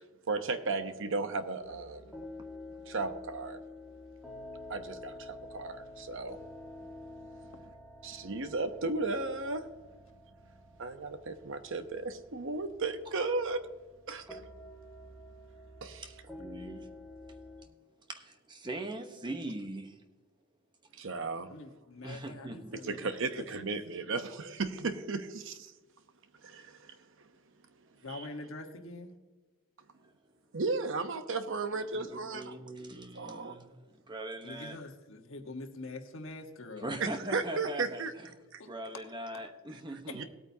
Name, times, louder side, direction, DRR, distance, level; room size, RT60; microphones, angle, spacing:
voice 1, 0.3-2.1 2.8-3.6 4.7-6.4 8.0-9.7 10.8-13.7 14.1-14.4 15.8-16.0 20.9-21.5 22.8-25.7 26.4-26.9 28.1-28.3 30.5-32.5 33.1-33.6 37.0-38.1 38.5-38.6 40.1-40.2, right 3 dB, 60° right, 9 dB, 0.9 m, -35 dB
sound 1, 1.6-17.6, left 2 dB, ahead, 1.4 m, -49 dB
voice 2, 16.4-16.9 18.1-20.0 22.0-22.7 31.9-34.8 36.8-38.0 38.7-40.2, right 1 dB, 20° right, 5 dB, 1.0 m, -41 dB
voice 3, 21.4-23.4 28.0-29.1 34.4-37.0 38.6-38.7 40.1-40.2, left 2 dB, 60° left, 4 dB, 1.3 m, -44 dB
17.5 x 8.8 x 2.8 m, 1.3 s
head